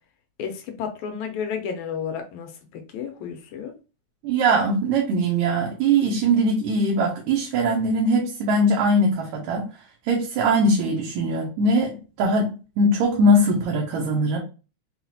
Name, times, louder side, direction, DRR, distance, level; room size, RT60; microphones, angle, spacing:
voice 1, 0.4-3.7, left 7 dB, 85° left, 2.1 m, -32 dB
voice 2, 4.2-9.7 10.1-12.5 12.8-14.4, right 1 dB, 80° right, 2.1 m, -21 dB
5.9 x 2.3 x 2.7 m
omnidirectional pair, 3.3 m